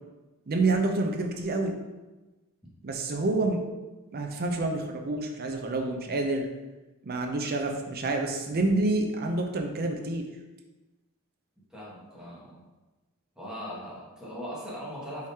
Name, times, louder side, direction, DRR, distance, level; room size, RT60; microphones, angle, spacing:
voice 1, 0.5-1.7 2.8-3.6 4.1-6.5 7.0-10.3, right 2 dB, 45° right, 3 dB, 0.5 m, -28 dB
voice 2, 11.7-12.6 13.3-15.3, equal, 5° right, -8 dB, 1.2 m, -39 dB
4.9 x 3.5 x 2.8 m, 1.1 s
head